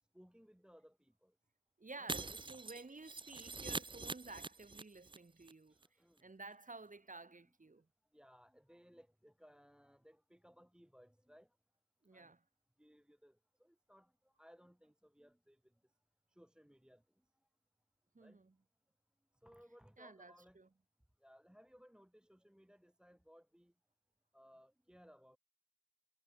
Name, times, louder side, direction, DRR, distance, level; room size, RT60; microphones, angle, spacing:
voice 1, 0.1-1.3 1.9-2.3 5.7-6.3 8.1-11.5 12.1-12.3 12.8-15.6 16.3-17.0 18.2-18.4 19.4-20.6 21.2-23.7 24.3-25.4, equal, 5° right, 1.0 m, -63 dB
voice 2, 1.8-5.7 6.2-7.9 12.0-12.4 18.1-18.5 20.0-20.7, right 3 dB, 65° right, 1.6 m, -53 dB
Shatter, 2.1-5.2 5.4-5.5 5.8-5.9, right 3 dB, 35° right, 0.4 m, -44 dB
wide cardioid pair, 55°, 15 cm